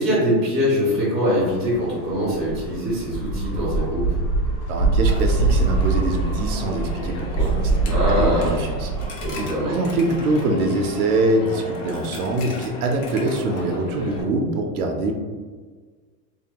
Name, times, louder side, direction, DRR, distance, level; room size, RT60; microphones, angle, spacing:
voice 1, 0.0-4.2 7.9-8.6 9.2-9.8, equal, ahead, -12 dB, 0.4 m, -23 dB
sound 1, 1.3-11.3, right 3 dB, 80° left, 1.3 m, -24 dB
voice 2, 4.7-7.7 8.2-8.9 9.4-15.1, right 2 dB, 60° right, 3 dB, 0.5 m, -24 dB
Coin (dropping), 5.1-14.2, left 2 dB, 55° left, 0.7 m, -36 dB
2.6 x 2.2 x 2.8 m, 1.5 s
supercardioid pair, 160°, 49 cm